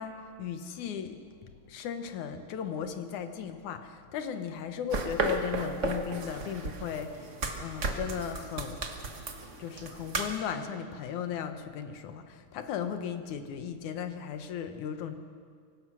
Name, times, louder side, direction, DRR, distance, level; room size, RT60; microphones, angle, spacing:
voice 1, 0.0-8.8 9.6-15.2, left 8 dB, 75° left, 8 dB, 2.5 m, -36 dB
sound 1, 4.9-10.4, right 3 dB, 45° right, 0.9 m, -34 dB
24.5 x 17.0 x 6.2 m, 2.1 s
omnidirectional pair, 3.5 m